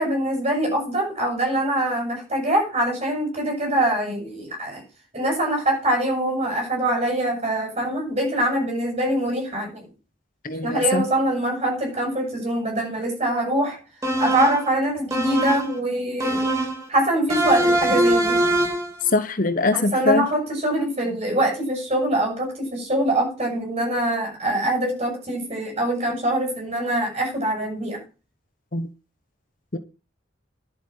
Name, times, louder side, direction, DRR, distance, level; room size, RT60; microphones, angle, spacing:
voice 1, 0.0-4.8 5.1-9.8 10.6-13.8 14.2-16.4 16.9-18.4 19.7-28.0, right 1 dB, 35° right, 1 dB, 7.9 m, -24 dB
voice 2, 10.4-11.1 19.1-20.3 28.7-28.9 29.7-29.8, left 3 dB, 45° left, 11 dB, 1.0 m, -22 dB
sound 1, 14.0-14.7 15.1-15.8 16.2-16.9 17.3-18.9, right 1 dB, 15° right, 2.1 m, -22 dB
11.0 x 8.1 x 6.4 m, 0.32 s
head